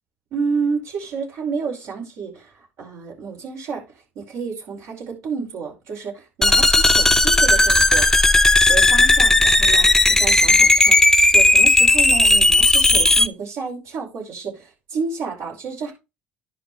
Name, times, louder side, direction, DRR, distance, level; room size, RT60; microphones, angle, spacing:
voice 1, 0.3-3.8 4.1-8.1 8.7-11.0 11.3-15.9, right 5 dB, 70° right, 5.0 m, -30 dB
sound 1, 6.4-13.3, left 2 dB, 10° left, 0.6 m, -15 dB
11.0 x 4.7 x 3.2 m
hypercardioid pair, 70°, 5 cm